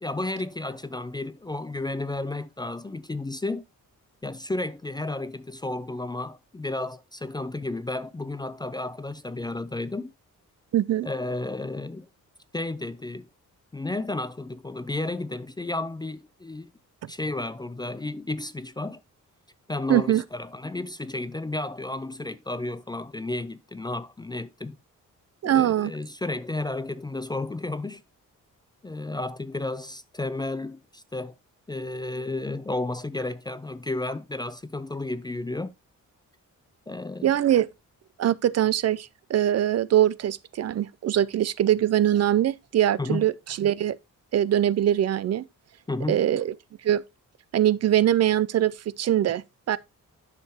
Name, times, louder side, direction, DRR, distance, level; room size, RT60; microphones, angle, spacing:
voice 1, 0.0-3.6 4.2-10.1 11.0-12.1 12.5-13.3 13.7-16.7 17.1-19.0 19.7-24.8 25.4-28.0 28.8-31.3 31.7-35.7 36.9-37.3 43.0-43.2 45.9-46.2, left 2 dB, 15° left, 0.4 m, -32 dB
voice 2, 10.7-11.1 19.9-20.2 25.4-25.9 37.2-37.7 38.2-44.0 44.3-45.4 46.1-46.5 46.8-47.0 47.5-49.8, right 11 dB, 55° right, 0.4 m, -22 dB
10.5 x 6.6 x 2.9 m
wide cardioid pair, 170°, 32 cm